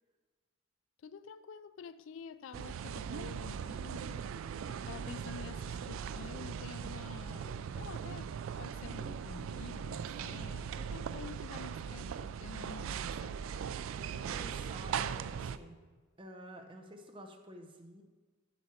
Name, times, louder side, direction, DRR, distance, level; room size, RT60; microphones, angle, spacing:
voice 1, 1.0-13.4, left 6 dB, 70° left, 0.3 m, -49 dB
sound 1, 2.5-15.6, right 7 dB, 80° right, 0.3 m, -39 dB
voice 2, 14.2-15.8 16.2-18.0, equal, 25° right, 0.8 m, -50 dB
8.3 x 6.2 x 4.3 m
head